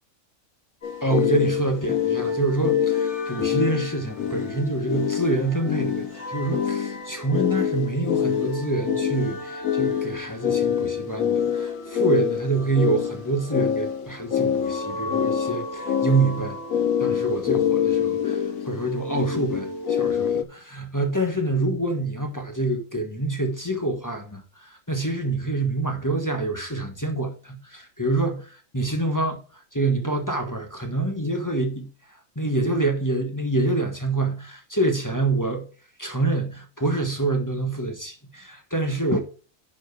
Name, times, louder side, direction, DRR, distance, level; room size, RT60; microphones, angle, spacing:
sound 1, 0.8-20.4, left 9 dB, 85° left, 1.1 m, -26 dB
sound 2, 0.8-20.0, right 1 dB, 55° left, 3.6 m, -38 dB
voice 1, 1.0-16.6 17.0-29.4 29.7-31.9 32.3-35.7 36.0-39.2, right 2 dB, 15° left, 1.3 m, -26 dB
10.5 x 4.7 x 4.8 m
omnidirectional pair, 1.4 m